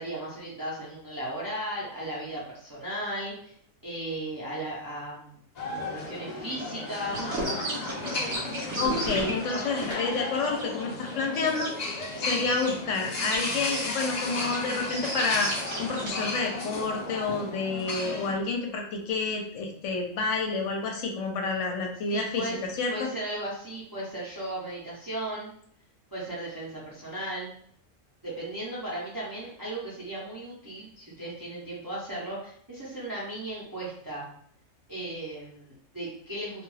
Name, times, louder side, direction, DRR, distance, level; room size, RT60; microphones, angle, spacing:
voice 1, 0.0-3.5 3.8-5.3 5.9-7.4 22.1-22.6 22.9-25.5 26.1-27.5 28.2-34.3 34.9-36.6, right 1 dB, 25° right, -6 dB, 0.5 m, -36 dB
sound 1, 5.6-18.3, left 2 dB, 50° left, 0.5 m, -34 dB
sound 2, 7.1-11.7 12.5-12.7 13.1-16.3, right 1 dB, 60° right, 1.0 m, -35 dB
voice 2, 8.8-11.7 12.2-15.5 15.8-23.1, left 4 dB, 75° left, 2 dB, 0.9 m, -29 dB
2.4 x 2.2 x 3.2 m, 0.63 s
omnidirectional pair, 1.3 m